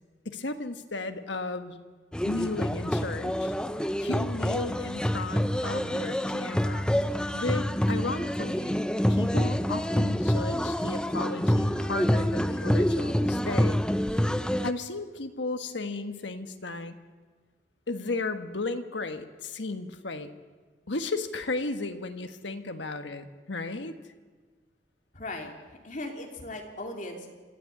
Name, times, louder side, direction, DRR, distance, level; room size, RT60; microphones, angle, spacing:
voice 1, 0.2-1.8 2.2-6.9 7.3-8.8 9.1-13.8 14.6-17.0 17.9-20.3 20.9-23.9, left 3 dB, 80° left, 8 dB, 1.4 m, -34 dB
sound 1, 2.1-14.7, equal, 5° left, 0.5 m, -27 dB
voice 2, 25.1-27.3, left 2 dB, 45° left, 2 dB, 3.0 m, -38 dB
25.5 x 14.0 x 8.5 m, 1.4 s
head